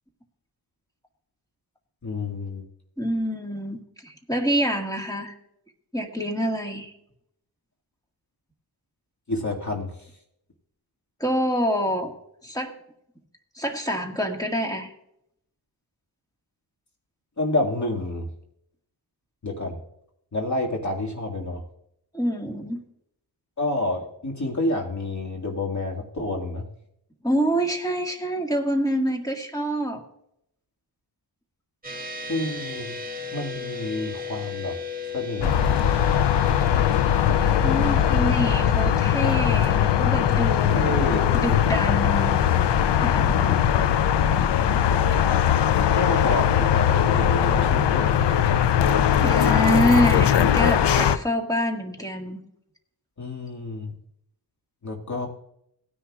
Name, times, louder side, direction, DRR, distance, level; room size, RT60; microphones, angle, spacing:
voice 1, 2.0-2.7 9.3-10.1 17.4-18.3 19.4-19.7 20.3-21.6 23.6-26.6 32.3-32.9 33.3-34.8 35.1-35.7 40.7-41.4 45.8-48.1 53.2-53.9 54.8-55.3, left 2 dB, 45° left, 0 dB, 2.0 m, -29 dB
voice 2, 3.0-5.3 5.9-6.9 11.2-12.1 12.4-12.8 13.6-14.9 22.1-22.8 27.2-30.0 37.6-40.8 41.3-42.4 43.0-43.7 49.2-52.4, equal, 10° left, 2 dB, 1.7 m, -26 dB
sound 1, 31.8-45.4, left 7 dB, 20° right, 1.6 m, -36 dB
sound 2, 35.4-51.2, left 9 dB, 80° left, 0.6 m, -20 dB
18.0 x 10.0 x 2.4 m, 0.75 s
wide cardioid pair, 115°, 41 cm